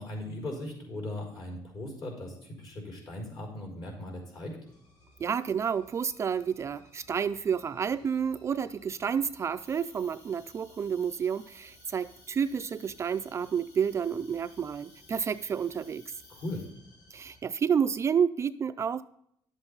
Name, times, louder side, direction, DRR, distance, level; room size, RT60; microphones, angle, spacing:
voice 1, 0.0-4.6 16.3-16.7, left 1 dB, 50° left, 1 dB, 4.6 m, -38 dB
sound 1, 4.6-17.4, left 1 dB, 90° left, 4.6 m, -60 dB
voice 2, 5.2-16.0 17.1-19.0, right 7 dB, 35° right, 11 dB, 0.4 m, -30 dB
Cricket, 9.6-16.6, left 2 dB, 35° left, 4.0 m, -58 dB
11.0 x 7.9 x 4.0 m, 0.70 s
cardioid pair, 125°, 9 cm